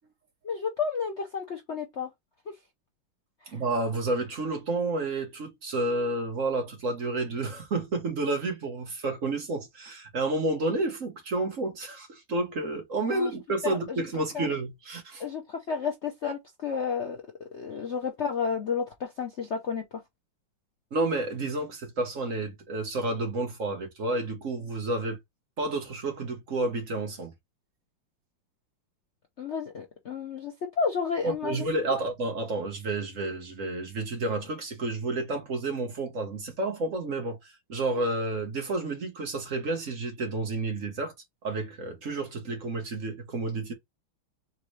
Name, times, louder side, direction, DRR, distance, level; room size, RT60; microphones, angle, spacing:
voice 1, 0.4-2.1 3.5-3.6 13.1-13.3 13.6-14.0 14.3-14.5 15.2-17.2 17.5-19.8 29.4-32.0, left 6 dB, 90° left, 0.6 m, -31 dB
voice 2, 3.5-15.2 20.9-25.2 25.6-27.3 31.2-41.1 41.4-43.7, right 2 dB, 45° right, 1.3 m, -30 dB
4.3 x 3.8 x 3.2 m
omnidirectional pair, 2.3 m